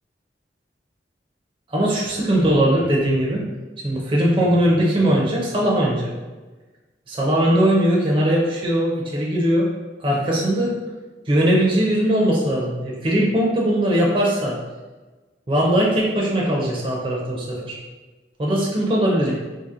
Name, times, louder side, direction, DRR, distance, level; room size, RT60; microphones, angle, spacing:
voice 1, 1.7-3.4 3.8-6.1 7.1-9.7 10.0-10.8 11.3-14.6 15.5-17.8 18.4-19.3, right 1 dB, 30° right, -4 dB, 0.6 m, -20 dB
2.8 x 2.7 x 3.7 m, 1.2 s
head